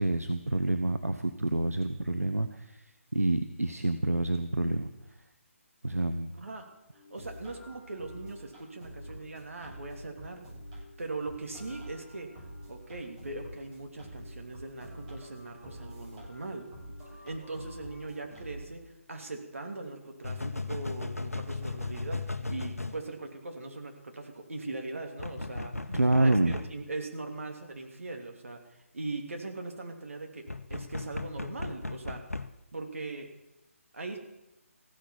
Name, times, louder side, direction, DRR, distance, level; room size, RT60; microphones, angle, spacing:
voice 1, 0.0-4.9 5.8-6.3 25.9-26.6, right 2 dB, 85° right, 8 dB, 1.0 m, -28 dB
voice 2, 6.4-6.7 7.1-10.4 11.0-12.3 12.7-16.7 17.2-18.8 19.1-25.7 26.1-28.6 28.9-30.4 30.7-32.2 32.7-33.3 33.9-34.2, right 3 dB, 65° right, 3 dB, 3.0 m, -40 dB
sound 1, 6.9-18.6, equal, 30° right, 7.7 m, -47 dB
sound 2, 18.3-18.4 20.2-23.0 25.2-26.7 30.5-32.5, left 3 dB, 90° left, 0.9 m, -36 dB
15.5 x 10.5 x 7.2 m, 0.92 s
figure-of-eight pair, 145°, 8 cm